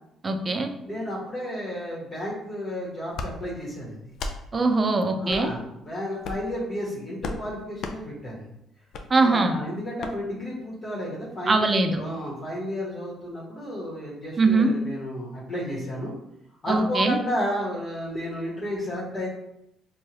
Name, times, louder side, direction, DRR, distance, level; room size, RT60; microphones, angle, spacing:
voice 1, 0.2-0.7 4.5-5.5 9.1-9.6 11.5-12.0 14.4-14.7 16.7-17.2, right 3 dB, 30° right, 6 dB, 0.5 m, -21 dB
voice 2, 0.8-4.0 5.2-8.4 9.2-16.1 16.6-19.3, equal, 35° left, -6 dB, 1.2 m, -32 dB
sound 1, 3.1-3.3 4.1-4.4 5.3-5.5 6.2-6.5 7.2-7.4 7.8-8.0 8.9-9.1 10.0-10.2, left 3 dB, 65° left, 0.4 m, -33 dB
4.4 x 2.3 x 3.0 m, 0.81 s
cardioid pair, 80°, 0 cm